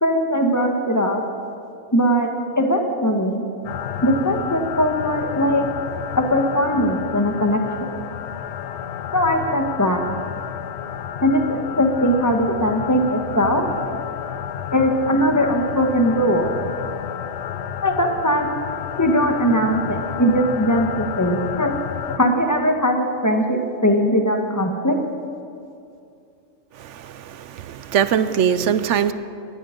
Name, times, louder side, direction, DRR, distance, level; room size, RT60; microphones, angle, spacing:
voice 1, 0.0-1.2 1.9-3.4 4.0-5.7 6.2-7.9 9.1-10.0 11.2-13.7 14.7-16.5 17.8-18.5 19.0-21.7 22.2-25.0, equal, 15° left, 3 dB, 1.3 m, -20 dB
sound 1, 3.6-22.2, left 9 dB, 65° left, 0.9 m, -31 dB
voice 2, 26.7-29.1, right 8 dB, 70° right, 13 dB, 0.9 m, -22 dB
19.0 x 12.0 x 5.2 m, 2.5 s
omnidirectional pair, 1.4 m